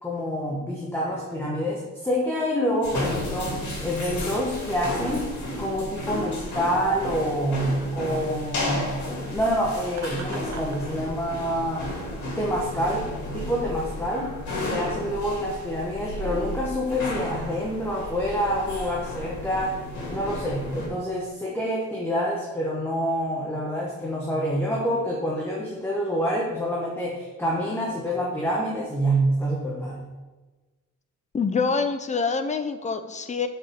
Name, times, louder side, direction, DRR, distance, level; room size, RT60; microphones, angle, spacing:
voice 1, 0.0-5.3 5.6-9.0 9.3-11.9 12.2-13.1 13.3-14.3 14.7-19.8 20.1-30.1, equal, 10° left, -4 dB, 1.1 m, -27 dB
sound 1, 2.8-20.9, left 1 dB, 65° left, 3.0 m, -33 dB
Laughter, 9.9-10.8, right 5 dB, 60° right, 1.0 m, -40 dB
voice 2, 31.3-33.5, left 5 dB, 25° left, 8 dB, 0.5 m, -26 dB
6.7 x 4.9 x 6.8 m, 1.2 s
wide cardioid pair, 170°, 31 cm